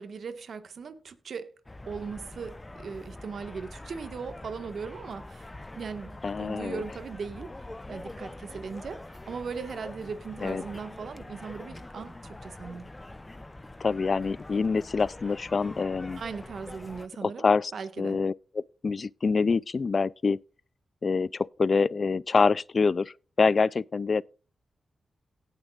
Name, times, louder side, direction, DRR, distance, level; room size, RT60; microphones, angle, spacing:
voice 1, 0.0-1.5 1.9-5.5 5.8-7.5 7.9-12.9 16.2-17.5 17.7-18.2, right 5 dB, 70° right, 1.6 m, -38 dB
sound 1, 1.7-17.1, left 2 dB, 20° left, 0.8 m, -44 dB
voice 2, 6.2-6.8 10.4-10.6 13.8-16.2 17.2-17.7 18.0-18.3 18.8-20.4 21.0-24.2, left 4 dB, 50° left, 0.4 m, -25 dB
18.0 x 6.9 x 2.5 m
cardioid pair, 60°, 0 cm